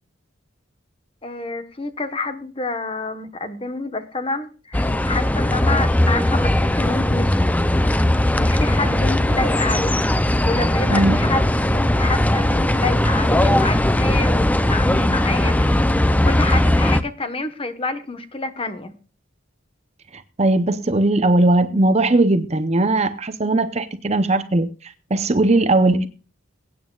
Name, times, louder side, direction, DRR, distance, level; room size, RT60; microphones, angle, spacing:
voice 1, 1.2-7.4 8.4-10.0 10.4-18.9, left 3 dB, 25° left, 1.2 m, -28 dB
sound 1, 4.7-17.0, left 1 dB, 10° left, 0.4 m, -18 dB
voice 2, 20.1-26.1, right 2 dB, 30° right, 0.7 m, -19 dB
22.0 x 9.2 x 2.4 m
head